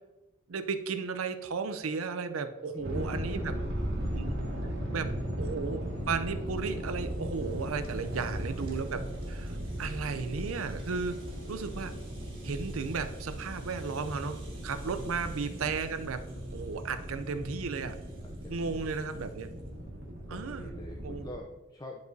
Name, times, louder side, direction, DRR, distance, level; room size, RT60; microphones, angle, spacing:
voice 1, 0.5-3.5 4.1-4.5 4.9-9.0 9.3-11.2 11.5-11.9 12.4-14.4 14.6-16.2 16.5-18.0 18.5-19.5 20.3-20.7 21.0-21.2, right 5 dB, 85° right, 10 dB, 0.6 m, -34 dB
voice 2, 2.7-4.3 4.8-5.5 15.0-15.8 18.2-19.3 20.3-22.0, left 1 dB, 20° left, 0 dB, 0.5 m, -47 dB
sound 1, 2.8-21.4, equal, 60° right, 1.7 m, -37 dB
Rattle (instrument), 5.5-19.7, right 3 dB, 25° right, 1.8 m, -59 dB
10.5 x 4.8 x 2.7 m, 1.1 s
head